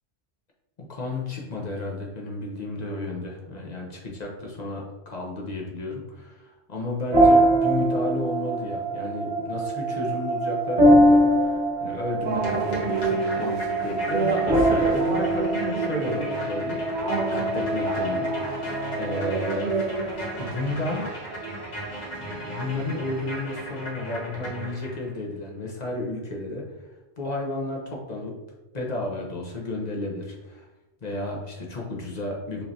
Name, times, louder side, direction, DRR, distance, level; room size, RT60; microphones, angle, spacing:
voice 1, 0.8-16.8 17.3-18.3 18.6-19.7 20.4-21.1 22.1-26.6 27.2-28.4 28.7-30.7 31.0-32.6, left 2 dB, 40° left, -1 dB, 1.0 m, -32 dB
sound 1, 7.1-20.4, right 1 dB, 35° right, 1.4 m, -23 dB
sound 2, 12.2-23.9, right 4 dB, 60° right, 0.5 m, -31 dB
sound 3, 12.3-25.1, equal, 85° left, 1.6 m, -37 dB
5.5 x 3.3 x 2.8 m, 1.0 s
omnidirectional pair, 1.2 m